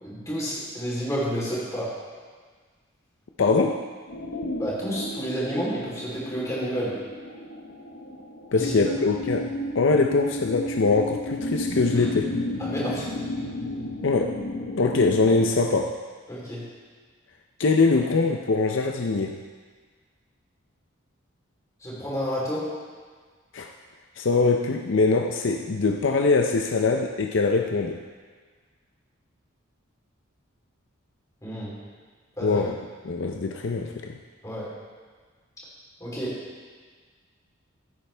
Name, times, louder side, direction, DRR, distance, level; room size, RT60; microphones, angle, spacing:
voice 1, 0.0-1.9 4.5-7.0 8.6-8.9 11.9-12.1 12.6-13.1 16.3-16.6 21.8-22.6 31.4-31.7 32.4-32.6 34.4-34.7 36.0-36.3, equal, 15° left, -7 dB, 3.4 m, -30 dB
voice 2, 3.4-3.8 8.5-12.3 14.0-14.4 14.8-16.0 17.6-19.4 23.5-23.7 24.2-28.0 32.4-32.7 33.0-34.1, left 3 dB, 60° left, 2 dB, 0.5 m, -23 dB
sound 1, 4.1-15.4, left 1 dB, 85° left, 1.1 m, -33 dB
15.5 x 8.8 x 3.4 m, 1.6 s
head